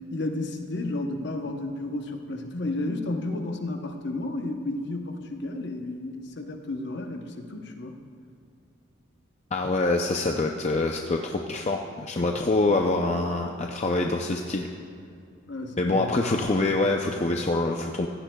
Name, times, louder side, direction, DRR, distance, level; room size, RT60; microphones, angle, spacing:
voice 1, 0.1-8.0 15.5-16.2, left 2 dB, 55° left, 4 dB, 0.8 m, -32 dB
voice 2, 9.5-14.7 15.8-18.1, left 2 dB, 30° left, 2 dB, 0.5 m, -25 dB
16.0 x 15.0 x 2.3 m, 2.4 s
head